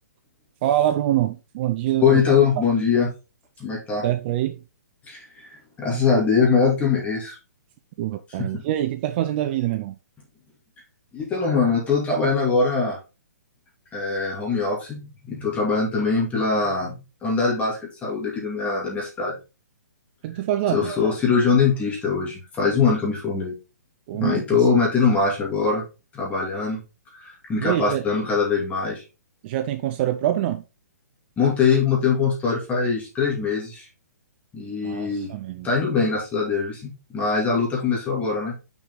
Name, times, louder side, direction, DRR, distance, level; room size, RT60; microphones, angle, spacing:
voice 1, 0.6-2.2 4.0-4.6 8.0-9.9 20.2-20.9 24.1-24.4 27.6-28.1 29.4-30.6 34.8-35.7, right 13 dB, 35° right, 0.6 m, -25 dB
voice 2, 2.0-3.1 3.6-4.0 5.1-7.4 8.4-8.6 11.1-13.0 13.9-19.4 20.7-23.5 24.2-25.9 26.1-26.8 27.1-29.0 31.4-33.9 34.5-35.3 35.6-38.5, left 5 dB, 15° left, 2.8 m, -22 dB
6.0 x 5.1 x 3.8 m
figure-of-eight pair, 130°, 9 cm